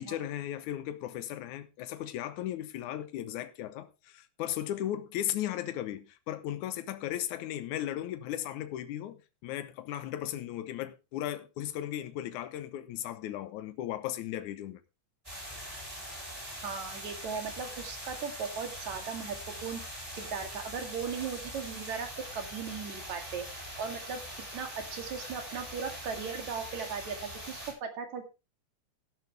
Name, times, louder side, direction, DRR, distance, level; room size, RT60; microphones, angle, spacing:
voice 1, 0.0-14.8, left 12 dB, 80° left, 2.4 m, -36 dB
sound 1, 15.2-27.7, equal, 10° right, 7.1 m, -42 dB
voice 2, 16.6-19.4 19.6-19.8 20.1-23.4 23.8-24.2 24.5-28.3, right 6 dB, 65° right, 3.4 m, -37 dB
13.5 x 11.0 x 3.4 m
omnidirectional pair, 3.5 m